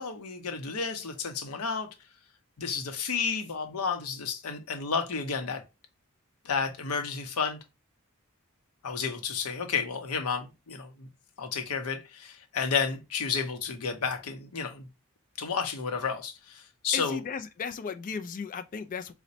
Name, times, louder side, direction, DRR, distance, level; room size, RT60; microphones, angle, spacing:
voice 1, 0.0-1.9 2.6-5.6 6.4-7.6 8.8-11.1 11.4-14.9 15.4-17.2, left 5 dB, 80° left, 0.6 m, -31 dB
voice 2, 16.9-19.1, left 5 dB, 40° left, 0.3 m, -35 dB
4.0 x 2.1 x 2.6 m
head